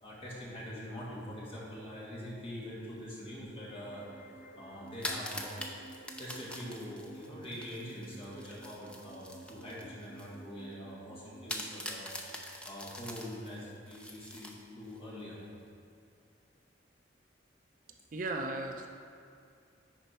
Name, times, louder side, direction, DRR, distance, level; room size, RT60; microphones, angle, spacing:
voice 1, 0.0-4.1 4.5-5.5 6.2-15.4, equal, 30° left, -6 dB, 1.8 m, -44 dB
sound 1, 3.6-11.6, right 2 dB, 50° left, 1.0 m, -53 dB
sound 2, 4.9-10.3 10.7-10.8 11.5-15.0, left 1 dB, 5° left, 0.5 m, -43 dB
voice 2, 18.1-18.9, right 2 dB, 45° right, 4 dB, 0.4 m, -35 dB
10.5 x 4.4 x 4.3 m, 2.4 s
head